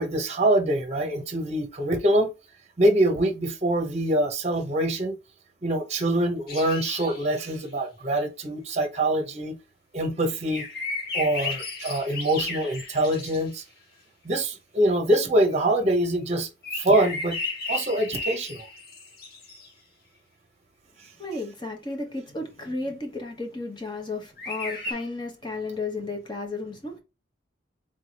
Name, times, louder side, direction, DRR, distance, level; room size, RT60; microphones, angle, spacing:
voice 1, 0.0-2.3 2.8-5.1 5.6-9.6 9.9-10.7 11.1-13.6 14.2-16.5 16.8-17.4 17.7-18.6, right 1 dB, 35° right, 0.9 m, -24 dB
sound 1, 6.5-7.4 10.5-13.5 16.6-19.7 24.4-24.9, left 3 dB, 55° left, 1.2 m, -34 dB
voice 2, 21.2-27.0, left 2 dB, 25° left, 1.1 m, -33 dB
3.7 x 3.5 x 4.1 m
head